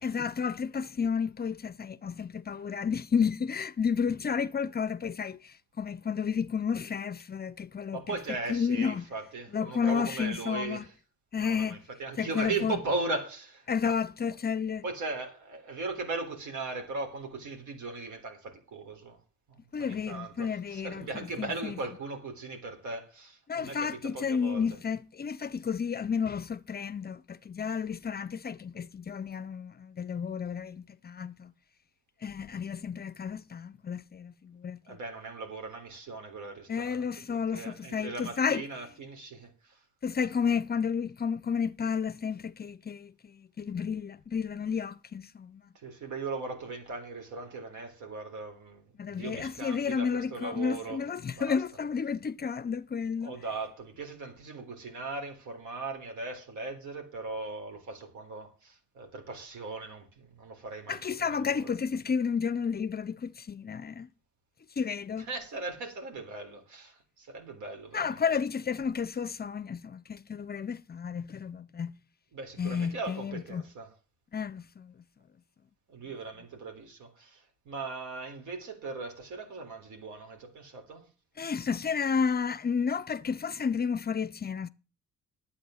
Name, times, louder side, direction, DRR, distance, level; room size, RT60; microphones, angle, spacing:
voice 1, 0.0-8.2 8.5-9.0 9.5-10.8 11.3-11.8 12.2-12.8 13.7-14.8 19.7-21.8 23.5-31.5 32.2-35.0 36.7-38.6 40.0-45.6 49.0-53.3 60.9-64.1 64.8-65.3 67.9-72.0 72.6-73.7 74.3-74.9 81.4-84.7, left 6 dB, 30° left, 0.6 m, -31 dB
voice 2, 7.9-10.8 11.4-14.0 14.8-19.2 19.8-24.6 34.9-39.7 45.8-51.0 51.3-51.6 53.2-61.7 65.3-68.2 72.3-73.9 75.9-81.0, right 3 dB, 75° right, 3.6 m, -38 dB
10.5 x 8.4 x 6.5 m
cardioid pair, 90°, 30 cm